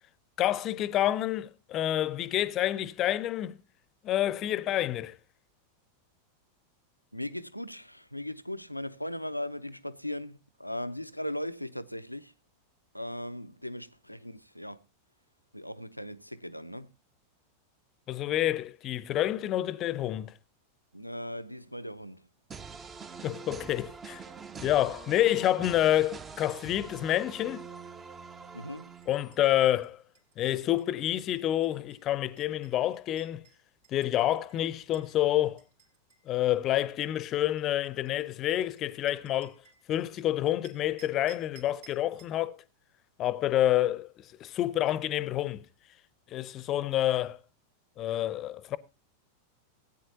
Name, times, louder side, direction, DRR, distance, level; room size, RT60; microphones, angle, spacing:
voice 1, 0.4-3.5 4.0-5.2 18.1-20.3 23.2-24.2 24.6-27.6 29.1-30.0 30.4-33.4 33.9-35.6 36.3-39.6 39.9-42.6 43.2-45.7 46.3-47.4 48.0-48.8, left 13 dB, 35° left, 0.7 m, -28 dB
voice 2, 7.1-12.3 12.9-14.8 15.5-16.9 20.9-22.3 28.5-28.9, left 1 dB, 90° left, 0.5 m, -38 dB
sound 1, 22.5-29.5, right 5 dB, 20° right, 0.7 m, -44 dB
sound 2, 29.0-35.2 35.6-40.2 40.6-42.4, right 6 dB, 65° right, 3.0 m, -60 dB
17.0 x 9.2 x 2.8 m
figure-of-eight pair, 90°, 0 cm